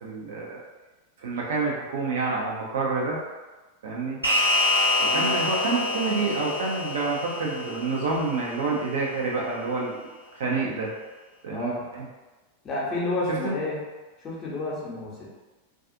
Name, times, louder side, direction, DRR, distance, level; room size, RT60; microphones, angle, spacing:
voice 1, 0.0-0.6 1.2-3.2 3.8-4.2 5.0-10.1 10.3-10.9 11.4-12.0 13.4-13.6, right 3 dB, 60° right, -3 dB, 0.6 m, -28 dB
sound 1, 4.2-8.9, left 2 dB, 85° left, 0.6 m, -26 dB
voice 2, 11.5-11.8 12.6-13.8 14.2-15.3, left 2 dB, 30° left, -5 dB, 0.8 m, -30 dB
2.4 x 2.4 x 2.6 m, 1.2 s
figure-of-eight pair, 90°, 0 cm